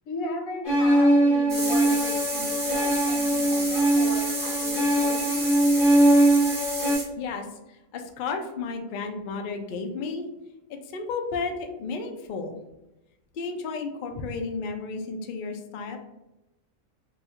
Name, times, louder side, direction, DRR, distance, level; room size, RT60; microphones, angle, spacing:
voice 1, 0.1-5.3, left 2 dB, 90° left, 1 dB, 1.2 m, -36 dB
sound 1, 0.6-6.9, right 1 dB, 45° left, 1.0 m, -21 dB
sound 2, 1.5-7.0, right 1 dB, 20° right, 0.7 m, -32 dB
voice 2, 7.2-10.2 10.7-12.6 13.3-16.0, left 4 dB, 65° left, 4 dB, 0.5 m, -33 dB
2.7 x 2.3 x 4.2 m, 0.95 s
omnidirectional pair, 1.4 m